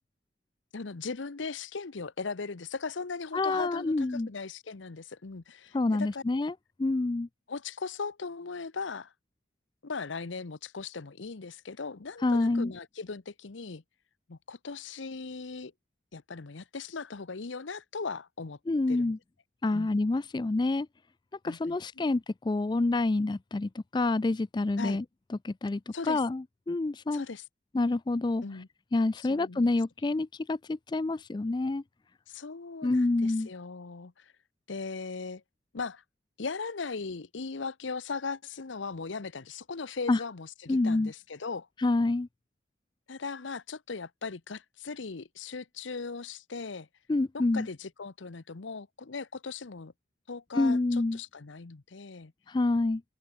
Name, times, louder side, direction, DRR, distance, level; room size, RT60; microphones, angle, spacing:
voice 1, 0.7-6.2 7.5-9.1 9.8-13.8 14.3-15.7 16.1-18.6 18.9-19.1 19.7-19.9 21.4-22.1 24.8-25.0 25.9-26.2 27.1-27.4 28.4-28.7 29.3-29.7 32.3-34.3 34.7-35.4 35.7-36.0 36.4-41.7 43.1-46.9 47.3-49.9 50.3-52.3, left 4 dB, 85° left, 0.9 m, -38 dB
voice 2, 3.3-4.3 5.7-7.3 12.2-12.7 18.7-19.2 19.6-20.9 21.4-25.0 25.4-27.2 27.7-28.4 28.9-31.8 32.8-33.5 40.1-40.2 40.7-41.1 41.8-42.3 47.1-47.7 50.6-51.2 52.5-53.0, left 2 dB, 25° left, 0.3 m, -27 dB
open air
head